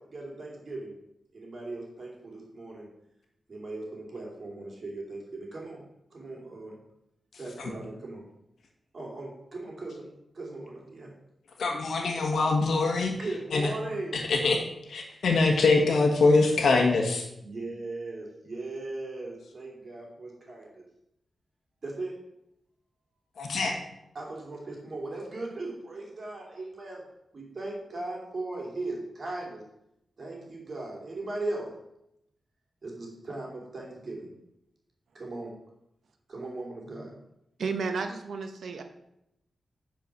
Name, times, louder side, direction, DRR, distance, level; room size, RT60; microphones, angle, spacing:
voice 1, 0.1-0.9 1.3-2.9 3.5-5.8 6.1-6.8 7.4-8.2 8.9-11.1 13.1-14.2 17.4-20.8 21.8-22.1 24.1-27.0 27.3-29.6 30.2-31.7 32.8-34.3 35.1-35.5 36.3-37.1, right 2 dB, 40° right, -2 dB, 2.8 m, -38 dB
voice 2, 11.6-13.1 13.5-13.7 14.1-14.6 14.9-17.2 23.4-23.8, left 3 dB, 80° left, 1 dB, 1.5 m, -23 dB
voice 3, 37.6-38.8, right 4 dB, 70° right, 7 dB, 1.0 m, -32 dB
9.7 x 4.6 x 6.0 m, 0.81 s
wide cardioid pair, 175°, 0 cm